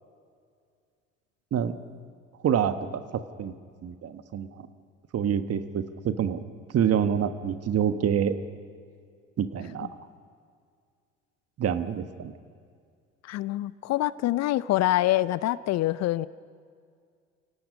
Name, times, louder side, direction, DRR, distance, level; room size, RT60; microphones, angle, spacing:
voice 1, 2.4-3.0 3.4-3.5 3.8-4.7 5.1-6.4 6.7-8.3 9.4-9.9 11.6-12.3, right 8 dB, 45° right, 10 dB, 1.4 m, -26 dB
voice 2, 13.2-16.3, left 15 dB, 50° left, 19 dB, 0.6 m, -25 dB
29.5 x 18.0 x 5.4 m, 2.2 s
figure-of-eight pair, 55°, 35 cm